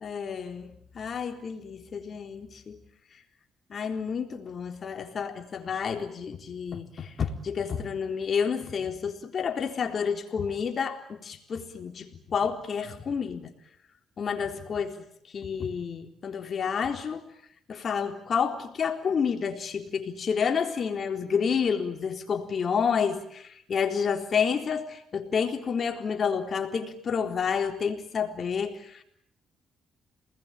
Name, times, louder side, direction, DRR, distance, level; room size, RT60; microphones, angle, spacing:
voice 1, 0.0-2.8 3.7-13.5 14.2-15.1 15.3-17.2 17.7-29.0, left 6 dB, 50° left, 4 dB, 3.8 m, -29 dB
28.0 x 20.5 x 9.1 m, 0.72 s
cardioid pair, 90°, 0 cm